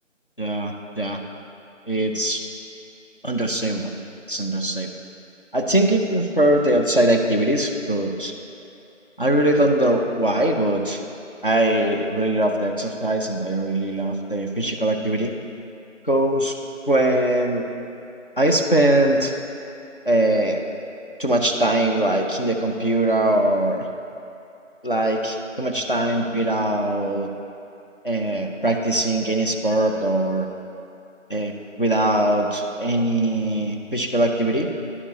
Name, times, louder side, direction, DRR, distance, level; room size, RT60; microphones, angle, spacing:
voice 1, 0.4-1.2 1.9-2.4 3.2-3.9 4.3-4.9 5.5-8.3 9.2-11.0 11.4-15.3 16.0-16.6 16.9-17.6 18.4-19.3 20.1-20.6 21.2-23.9 24.8-27.3 28.0-30.5 31.3-34.7, right 1 dB, 45° left, 2 dB, 0.4 m, -21 dB
11.0 x 5.8 x 2.7 m, 2.8 s
figure-of-eight pair, 170°, 38 cm